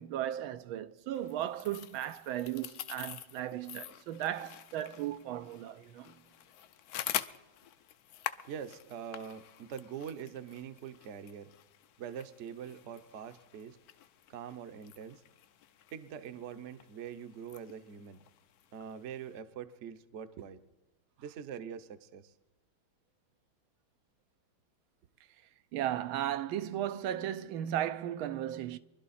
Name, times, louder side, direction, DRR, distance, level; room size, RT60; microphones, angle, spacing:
voice 1, 0.0-6.2 25.7-28.8, right 11 dB, 90° right, 1.5 m, -36 dB
sound 1, 1.1-19.4, left 11 dB, 70° left, 0.9 m, -46 dB
voice 2, 8.5-11.5 12.0-13.8 14.3-15.2 15.9-18.2 18.7-20.6 21.2-22.3, right 8 dB, 55° right, 0.8 m, -44 dB
23.0 x 12.0 x 4.2 m
omnidirectional pair, 2.2 m